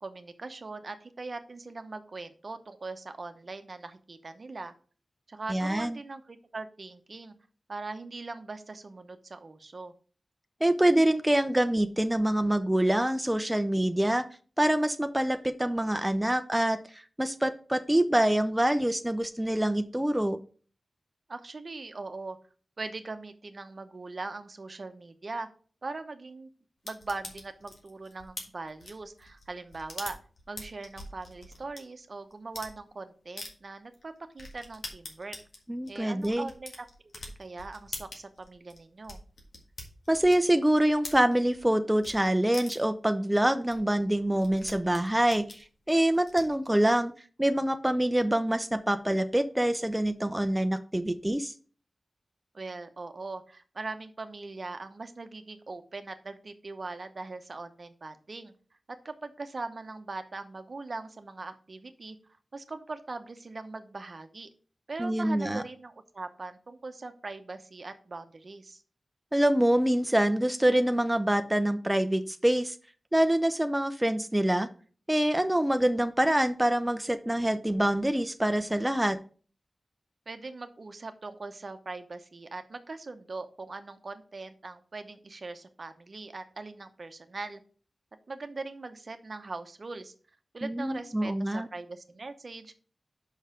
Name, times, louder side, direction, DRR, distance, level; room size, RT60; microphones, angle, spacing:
voice 1, 0.0-4.7 5.3-7.3 7.7-9.9 21.3-22.4 22.8-25.5 25.8-26.5 26.8-30.2 30.5-35.4 35.9-36.9 37.4-39.2 52.5-58.5 59.0-62.2 62.5-64.5 64.9-68.8 80.3-87.6 88.3-90.1 90.5-92.7, right 3 dB, 55° right, 9 dB, 0.8 m, -41 dB
voice 2, 5.5-6.0 10.6-14.2 14.6-20.4 35.7-36.5 40.1-47.1 47.4-51.5 65.0-65.6 69.3-72.8 73.1-74.7 75.1-79.2 90.6-91.7, right 1 dB, 10° right, 9 dB, 0.6 m, -25 dB
sound 1, 26.9-31.8 32.3-32.7 33.4-33.5 33.9-34.0 34.4-41.7 42.0-42.1 42.5-43.0 43.4-43.5 43.7-43.8 44.0-46.7, left 2 dB, 85° left, 1.7 m, -44 dB
5.6 x 5.4 x 5.0 m, 0.40 s
cardioid pair, 55°, 0 cm